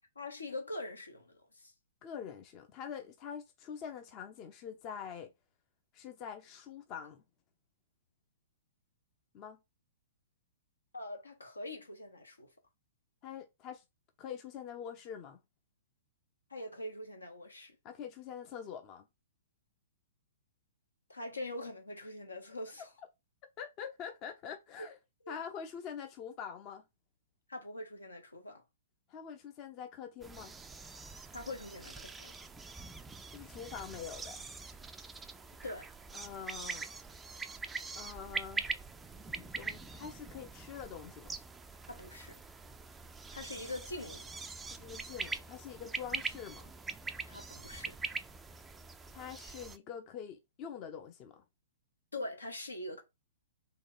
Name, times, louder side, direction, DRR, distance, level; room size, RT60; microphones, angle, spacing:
voice 1, 0.1-1.7 10.9-12.5 16.5-17.7 21.1-22.9 25.2-25.3 27.5-28.6 31.3-32.3 35.6-35.9 41.9-42.4 43.3-44.2 47.3-47.9 52.1-53.0, left 2 dB, 75° left, 1.2 m, -43 dB
voice 2, 2.0-5.3 5.9-7.2 9.3-9.6 13.2-13.8 14.2-15.4 17.8-19.1 22.8-22.9 23.6-25.0 25.3-26.8 29.1-30.6 33.3-34.4 36.1-36.9 38.0-38.7 39.4-41.4 44.7-46.7 49.1-51.4, left 8 dB, 30° left, 0.6 m, -45 dB
sound 1, 30.2-49.8, right 4 dB, 10° right, 0.4 m, -43 dB
3.9 x 3.0 x 3.8 m
figure-of-eight pair, 115°, 0 cm